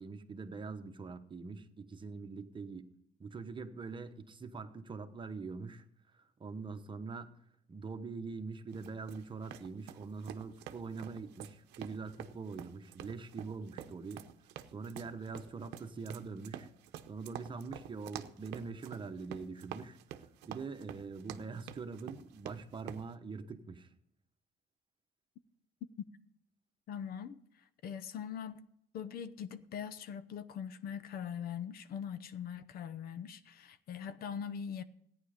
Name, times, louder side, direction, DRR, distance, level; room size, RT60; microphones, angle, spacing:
voice 1, 0.0-2.9 3.2-5.9 6.1-7.4 7.7-14.2 14.7-16.7 17.1-20.0 20.4-23.9, right 4 dB, 30° right, 1.1 m, -43 dB
sound 1, 8.7-23.1, right 11 dB, 90° right, 0.8 m, -48 dB
voice 2, 26.9-27.4 27.8-28.7 28.9-34.8, left 8 dB, 65° left, 0.8 m, -42 dB
14.5 x 9.7 x 5.1 m
cardioid pair, 110°, 17 cm